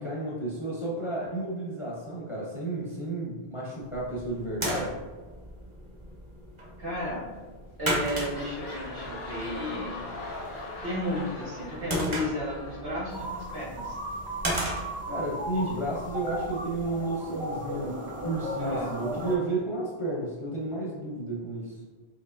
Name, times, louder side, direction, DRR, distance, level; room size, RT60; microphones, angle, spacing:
voice 1, 0.0-5.0 15.1-21.8, right 2 dB, 40° left, -5 dB, 0.5 m, -32 dB
sound 1, 3.8-16.9, right 1 dB, 35° right, 0.7 m, -37 dB
voice 2, 6.8-7.3 7.8-10.1 10.8-14.0 15.5-15.6 18.6-18.9, left 1 dB, 55° right, -6 dB, 1.5 m, -33 dB
sound 2, 7.3-7.5 7.8-13.6 14.3-14.4, left 2 dB, 85° left, 1.1 m, -41 dB
sound 3, 13.1-19.4, right 1 dB, 90° right, 1.0 m, -36 dB
4.5 x 2.8 x 2.5 m, 1.3 s
omnidirectional pair, 1.1 m